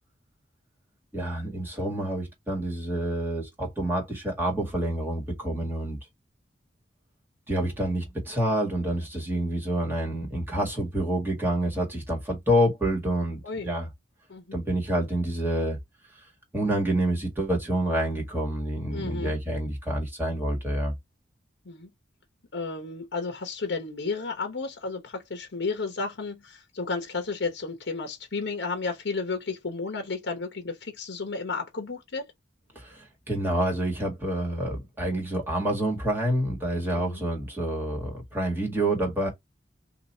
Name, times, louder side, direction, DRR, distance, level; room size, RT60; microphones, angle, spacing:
voice 1, 1.1-6.0 7.5-13.9 14.5-15.8 16.5-20.9 32.7-39.3, right 1 dB, 10° right, 1.8 m, -28 dB
voice 2, 14.3-14.6 18.9-19.3 21.6-21.9 22.5-32.3 37.0-37.2, left 4 dB, 70° left, 0.9 m, -32 dB
2.8 x 2.8 x 4.2 m
head